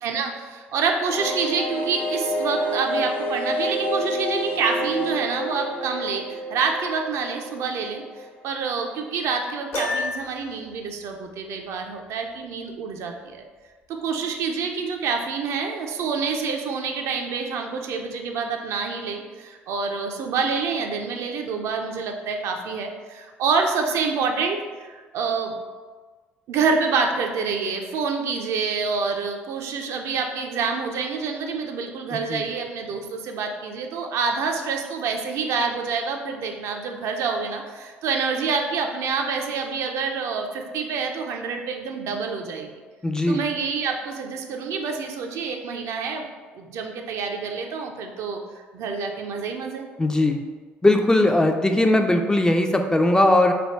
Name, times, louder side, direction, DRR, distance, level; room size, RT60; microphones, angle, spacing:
voice 1, 0.0-8.0 8.4-13.4 13.9-25.5 26.5-42.7 43.3-46.3 46.6-48.4 48.7-49.8, right 5 dB, 60° right, 3 dB, 0.4 m, -27 dB
sound 1, 1.0-8.5 8.8-8.9 9.1-9.2, equal, 65° left, 1.1 m, -29 dB
Piano, 9.7-10.6, left 2 dB, 45° left, 0.7 m, -28 dB
voice 2, 43.0-43.4 50.0-50.4 50.8-53.5, left 1 dB, 10° left, 4 dB, 0.4 m, -19 dB
3.3 x 2.2 x 4.4 m, 1.4 s
figure-of-eight pair, 50°, 6 cm